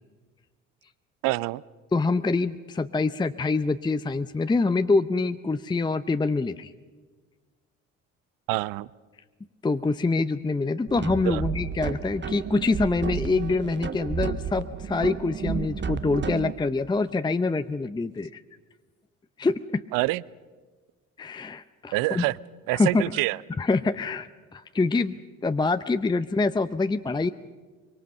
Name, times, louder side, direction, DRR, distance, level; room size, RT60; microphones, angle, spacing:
voice 1, 1.2-1.6 8.5-8.9 11.2-11.4 19.9-20.2 21.9-22.4 22.7-23.4, right 20 dB, 60° right, 22 dB, 0.6 m, -26 dB
voice 2, 1.9-6.7 9.6-18.4 19.4-19.8 21.2-22.2 22.7-23.0 23.6-25.2 25.4-27.3, left 3 dB, 10° left, 11 dB, 0.7 m, -25 dB
sound 1, 10.9-16.5, right 6 dB, 30° right, 1.1 m, -32 dB
24.0 x 23.5 x 6.6 m, 1.4 s
hypercardioid pair, 55°, 38 cm